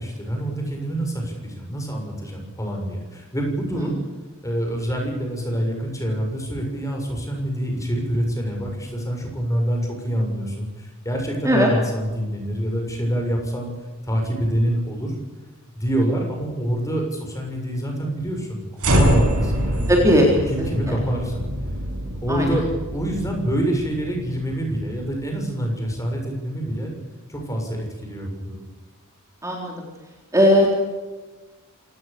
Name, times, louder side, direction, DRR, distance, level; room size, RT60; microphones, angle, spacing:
voice 1, 0.0-4.0 4.4-13.7 14.0-15.1 15.7-19.9 20.5-21.4 22.2-26.9 27.3-28.6, right 1 dB, 15° left, 2 dB, 6.7 m, -26 dB
sound 1, 18.8-25.1, equal, 75° right, 6.6 m, -25 dB
voice 2, 19.9-20.3 20.6-20.7 22.3-22.5 29.4-29.7 30.3-30.7, equal, 15° right, -1 dB, 3.8 m, -17 dB
27.0 x 18.0 x 6.9 m, 1.2 s
head